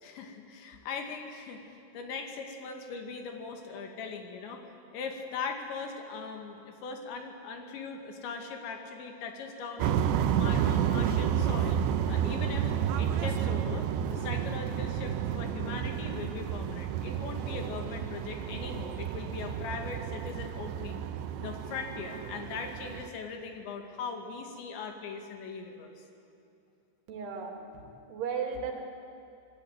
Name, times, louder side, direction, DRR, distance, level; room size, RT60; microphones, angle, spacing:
voice 1, 0.0-4.6 4.9-10.0 10.3-11.8 12.1-12.7 13.0-21.0 21.4-26.0, left 5 dB, 90° left, 4 dB, 4.6 m, -40 dB
sound 1, 9.8-23.1, right 9 dB, 90° right, 3.2 m, -31 dB
voice 2, 27.1-28.8, right 6 dB, 70° right, 2 dB, 4.5 m, -36 dB
26.0 x 21.0 x 9.3 m, 2.7 s
omnidirectional pair, 5.0 m